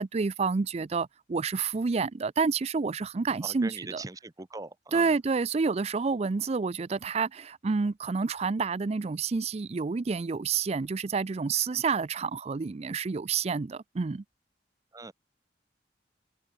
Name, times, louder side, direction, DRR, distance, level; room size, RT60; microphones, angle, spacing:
voice 1, 0.0-4.0 4.9-14.2, right 4 dB, 35° right, 0.4 m, -29 dB
voice 2, 3.4-5.2 14.9-15.1, right 2 dB, 20° right, 0.8 m, -41 dB
open air
head